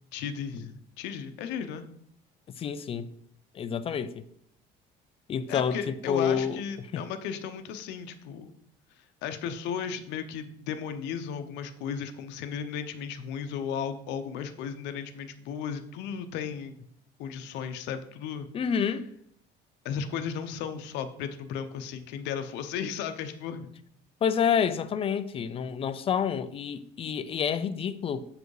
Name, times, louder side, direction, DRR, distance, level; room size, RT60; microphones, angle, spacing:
voice 1, 0.1-1.9 5.5-8.5 9.2-16.7 17.2-18.5 19.8-23.7, left 7 dB, 85° left, 0.9 m, -35 dB
voice 2, 2.6-3.1 3.5-4.2 5.3-6.6 6.9-7.0 18.5-19.0 24.2-28.3, left 7 dB, 30° left, 0.5 m, -28 dB
7.8 x 5.0 x 4.8 m
cardioid pair, 145°, 18 cm